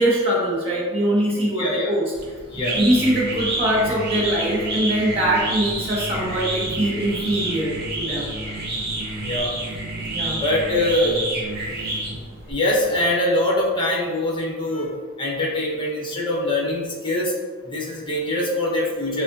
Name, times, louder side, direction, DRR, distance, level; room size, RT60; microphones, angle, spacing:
voice 1, 0.0-2.0 2.8-8.3 10.1-10.4, right 1 dB, 25° right, -5 dB, 1.3 m, -22 dB
voice 2, 1.6-1.9 2.5-2.8 9.2-9.5 10.4-11.2 12.5-14.9 15.2-17.3 17.6-19.2, left 1 dB, 20° left, -3 dB, 1.1 m, -23 dB
sound 1, 2.1-12.5, right 2 dB, 45° right, 1.0 m, -28 dB
7.2 x 2.5 x 2.6 m, 1.5 s
head